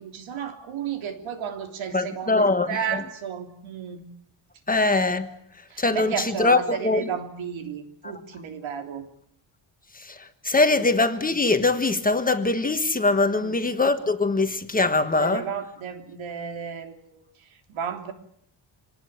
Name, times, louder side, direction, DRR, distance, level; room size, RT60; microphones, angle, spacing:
voice 1, 0.0-4.0 5.7-9.0 13.3-13.6 15.2-17.2 17.7-18.1, right 7 dB, 80° right, 3.3 m, -33 dB
voice 2, 1.9-3.0 4.7-5.3 5.8-7.1 8.0-8.1 10.4-15.4, left 3 dB, 20° left, 1.3 m, -22 dB
26.0 x 19.0 x 9.5 m
wide cardioid pair, 175°, 46 cm